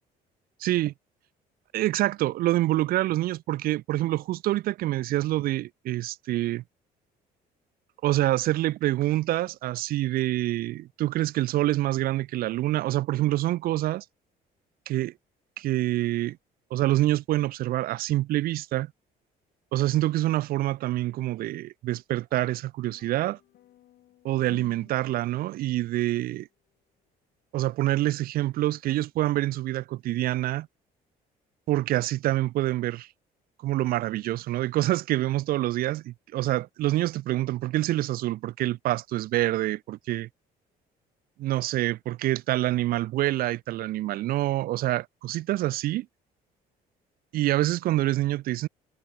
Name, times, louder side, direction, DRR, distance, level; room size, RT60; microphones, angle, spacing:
voice 1, 0.6-0.9 1.7-6.6 8.0-14.0 14.9-15.1 15.6-16.4 16.7-18.9 19.7-23.4 24.2-26.5 27.5-30.7 31.7-33.1 33.6-40.3 41.4-46.1 47.3-48.7, right 15 dB, 60° right, 0.4 m, -26 dB
sound 1, 22.9-26.2, left 13 dB, 65° left, 1.4 m, -53 dB
cardioid pair, 110°, 17 cm